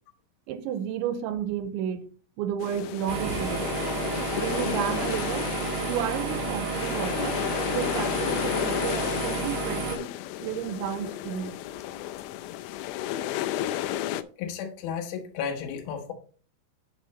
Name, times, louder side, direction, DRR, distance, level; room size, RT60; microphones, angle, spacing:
voice 1, 0.5-3.7 4.4-5.5 5.8-7.4 7.7-10.2 10.4-11.6, right 9 dB, 85° right, 3.0 m, -32 dB
sound 1, 2.6-14.2, left 13 dB, 85° left, 3.0 m, -32 dB
sound 2, 3.1-10.0, right 4 dB, 70° right, 1.5 m, -31 dB
voice 2, 14.4-16.1, left 7 dB, 70° left, 2.5 m, -33 dB
8.5 x 6.2 x 4.2 m
omnidirectional pair, 5.4 m